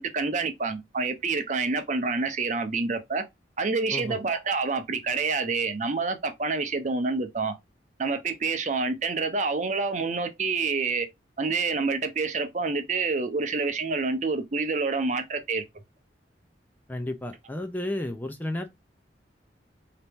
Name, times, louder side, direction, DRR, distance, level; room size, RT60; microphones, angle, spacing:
voice 1, 0.0-3.2 3.6-7.5 8.0-11.1 11.4-15.6, right 4 dB, 40° right, 0.7 m, -27 dB
voice 2, 16.9-18.7, left 1 dB, 10° left, 0.4 m, -32 dB
3.9 x 2.9 x 3.5 m
head